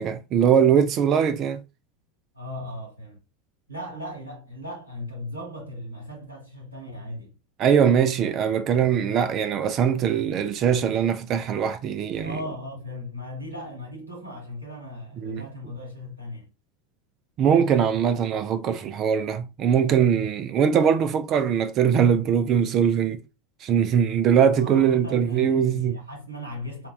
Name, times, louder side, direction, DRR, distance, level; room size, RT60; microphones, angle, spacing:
voice 1, 0.0-1.6 7.6-12.3 15.2-15.4 17.4-23.2 23.6-26.0, right 8 dB, 40° right, 0.3 m, -21 dB
voice 2, 2.3-3.2 3.7-7.3 12.2-16.5 24.5-26.9, left 1 dB, 90° right, 1.0 m, -37 dB
4.4 x 2.2 x 2.2 m
figure-of-eight pair, 80°, 0 cm